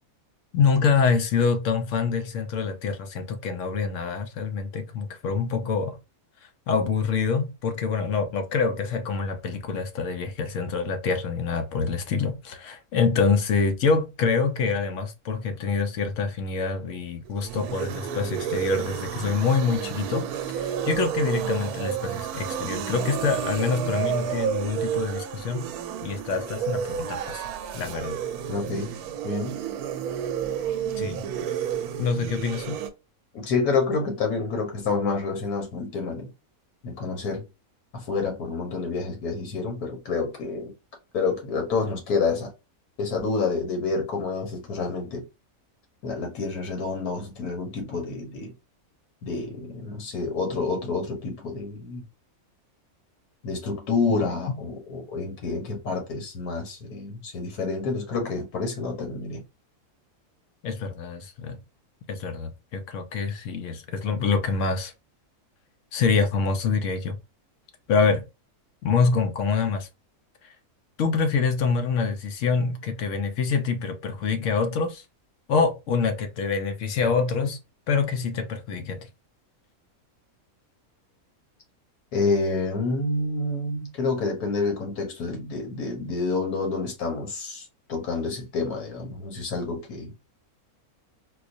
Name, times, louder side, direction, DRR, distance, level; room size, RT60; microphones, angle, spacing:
voice 1, 0.5-6.0 6.7-25.7 26.0-27.4 27.7-28.2 31.0-31.3 32.0-32.8 60.6-61.6 62.1-64.9 65.9-67.2 67.9-68.2 68.8-69.9 71.0-75.0 75.5-77.6 77.9-79.1, left 5 dB, 65° left, 0.9 m, -26 dB
sound 1, 17.3-32.9, right 9 dB, 85° right, 1.1 m, -31 dB
voice 2, 28.5-29.0 29.2-29.6 33.3-36.3 36.8-37.4 37.9-40.7 41.1-42.5 43.0-45.3 46.0-48.5 49.2-52.0 53.4-59.4 82.1-90.1, left 4 dB, 85° left, 1.6 m, -28 dB
4.2 x 2.3 x 2.6 m
omnidirectional pair, 1.6 m